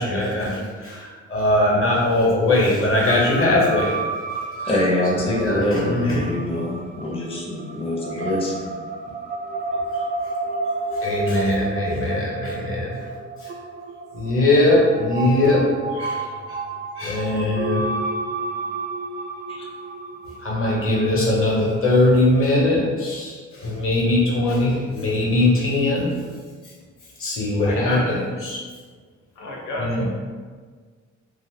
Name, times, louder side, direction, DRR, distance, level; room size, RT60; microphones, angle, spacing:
voice 1, 0.0-3.9 4.6-4.9 5.1-6.3 10.9-13.0 13.4-13.5 14.1-15.6 15.9-16.6 17.0-17.9 20.4-26.1 27.2-28.6 29.8-30.1, left 2 dB, 45° left, -4 dB, 1.0 m, -21 dB
sound 1, 3.1-21.2, right 3 dB, 30° right, 0.4 m, -31 dB
voice 2, 4.6-8.7 9.9-10.0 19.5-19.6, left 1 dB, 20° left, -3 dB, 0.6 m, -25 dB
voice 3, 27.6-28.2 29.4-30.1, left 1 dB, 85° left, -3 dB, 0.6 m, -30 dB
2.5 x 2.3 x 3.6 m, 1.5 s
cardioid pair, 90°, 30 cm